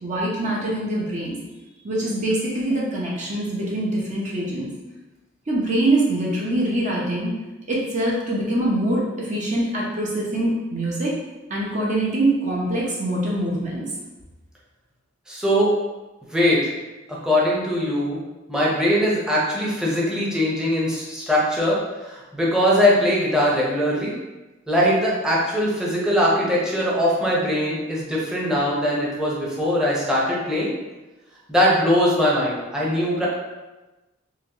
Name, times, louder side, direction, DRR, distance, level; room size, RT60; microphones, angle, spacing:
voice 1, 0.0-1.4 1.8-4.7 5.5-7.4 7.7-11.1 11.5-13.9, right 1 dB, 35° right, -5 dB, 0.7 m, -24 dB
voice 2, 15.3-15.7 16.3-16.6 17.2-18.2 18.5-24.1 24.7-30.7 31.5-33.3, equal, 5° right, -6 dB, 0.8 m, -21 dB
4.0 x 3.0 x 2.9 m, 1.1 s
head